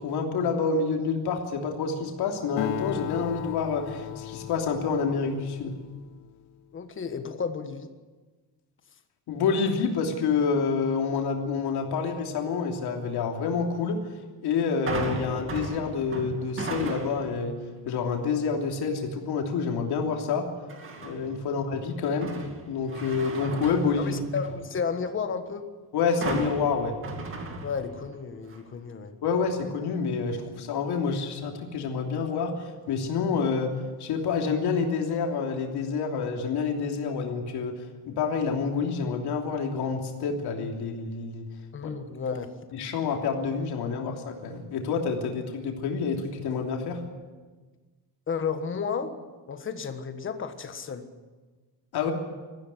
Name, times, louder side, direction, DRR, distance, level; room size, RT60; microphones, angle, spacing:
voice 1, 0.0-5.7 9.3-14.0 14.4-17.6 17.8-20.5 21.0-22.3 22.7-24.2 25.9-27.0 29.2-33.7 34.0-37.8 38.1-41.4 41.8-41.9 42.7-47.0 51.9-52.1, left 5 dB, 80° left, 2 dB, 3.2 m, -28 dB
Acoustic guitar, 2.6-6.4, left 15 dB, 55° left, 0.6 m, -37 dB
voice 2, 6.7-7.9 21.5-21.6 24.0-25.7 27.6-29.1 41.7-42.6 48.3-51.1, left 6 dB, 30° left, 8 dB, 1.5 m, -32 dB
sound 1, 14.9-17.4 17.9-18.3 20.7-21.4 21.8-24.7 26.2-28.2 28.5-28.6, right 3 dB, 30° right, 2.5 m, -36 dB
20.0 x 15.0 x 9.6 m, 1.3 s
cardioid pair, 175°, 39 cm